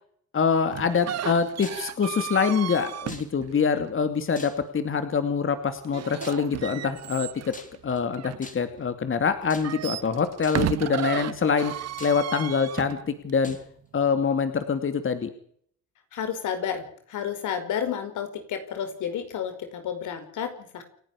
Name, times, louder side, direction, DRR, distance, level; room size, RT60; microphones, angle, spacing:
voice 1, 0.3-7.6 7.8-11.7 12.0-13.6 13.9-15.3, left 6 dB, 45° left, 9 dB, 2.6 m, -25 dB
sound 1, 0.7-4.0 5.8-8.9 9.4-13.6, right 11 dB, 60° right, 0.9 m, -34 dB
sound 2, 1.6-1.9 3.1-3.6 4.3-4.9 6.2-6.5 7.5-8.0 8.4-8.8 9.5-10.0 10.4-10.8 11.5-11.6 12.0-12.6 13.4-13.7, left 3 dB, 25° left, 3.6 m, -45 dB
voice 2, 16.1-20.8, left 8 dB, 80° left, 8 dB, 5.1 m, -31 dB
29.0 x 11.0 x 8.5 m, 0.62 s
cardioid pair, 90°, 30 cm